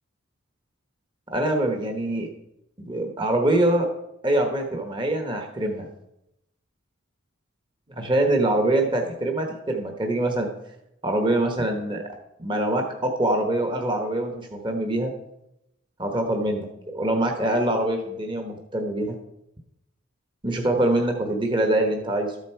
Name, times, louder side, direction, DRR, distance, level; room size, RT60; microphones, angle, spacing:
voice 1, 1.3-2.3 2.8-3.9 4.2-5.9 8.0-10.5 11.0-15.1 16.0-19.2 20.4-22.3, right 1 dB, 20° right, 3 dB, 1.1 m, -24 dB
13.0 x 8.2 x 4.5 m, 0.84 s
head